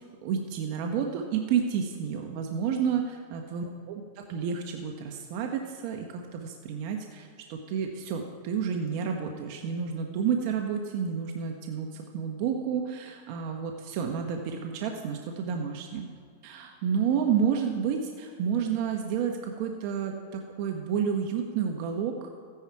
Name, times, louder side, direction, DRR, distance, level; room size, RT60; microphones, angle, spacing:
voice 1, 0.2-3.0 3.3-16.1 16.4-22.3, right 7 dB, 50° right, 3 dB, 1.1 m, -30 dB
14.5 x 10.5 x 4.8 m, 2.3 s
hypercardioid pair, 130°, 0 cm